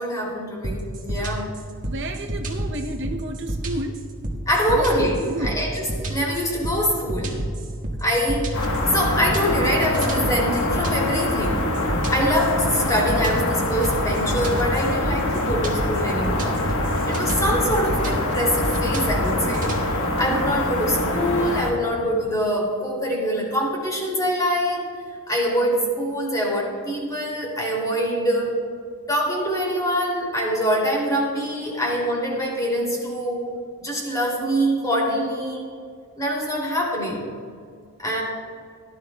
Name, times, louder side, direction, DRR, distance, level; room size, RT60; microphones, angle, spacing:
voice 1, 0.0-1.5 4.5-7.5 8.0-24.9 25.3-28.7 29.1-35.6 36.2-37.3 38.0-38.2, equal, 15° left, -3 dB, 2.6 m, -24 dB
sound 1, 0.6-19.8, right 1 dB, 35° right, 1.6 m, -30 dB
voice 2, 1.9-3.9 4.7-4.9 5.2-5.6 31.8-31.9, right 1 dB, 55° right, 3 dB, 0.7 m, -31 dB
sound 2, 8.5-21.7, left 1 dB, 60° left, 1.2 m, -25 dB
17.5 x 12.0 x 2.2 m, 2.2 s
head